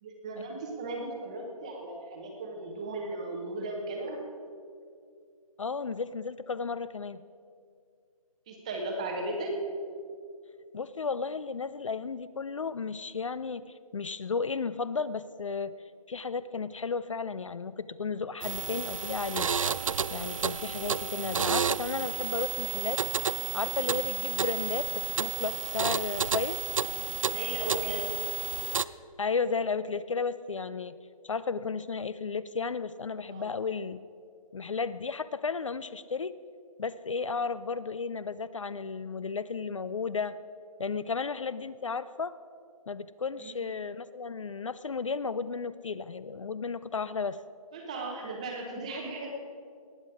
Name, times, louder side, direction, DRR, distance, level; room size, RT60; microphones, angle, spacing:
voice 1, 0.0-4.2 8.5-9.5 27.3-28.0 33.3-33.5 43.4-43.6 47.7-49.3, right 2 dB, 10° right, 1 dB, 0.8 m, -36 dB
voice 2, 5.6-7.2 10.7-13.6 13.9-15.7 16.1-19.5 20.1-23.0 23.5-26.6 29.2-31.0 31.2-34.0 34.5-36.4 36.8-40.4 40.8-42.4 42.9-47.4, left 5 dB, 55° left, 16 dB, 0.4 m, -33 dB
sound 1, 18.4-28.8, right 6 dB, 60° right, 0.4 m, -31 dB
19.0 x 8.5 x 4.8 m, 2.3 s
hypercardioid pair, 170°, 19 cm